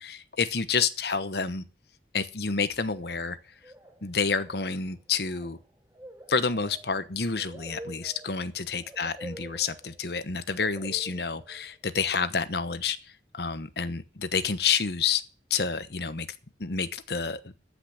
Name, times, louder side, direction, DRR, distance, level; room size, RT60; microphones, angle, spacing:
voice 1, 0.0-1.6 2.1-3.4 4.0-5.6 6.3-13.0 13.3-15.2 15.5-16.3 16.6-17.5, left 5 dB, 65° left, 1.1 m, -29 dB
sound 1, 2.9-3.3 3.6-4.1 4.3-11.9, right 1 dB, 10° right, 3.7 m, -47 dB
13.5 x 6.3 x 8.6 m
head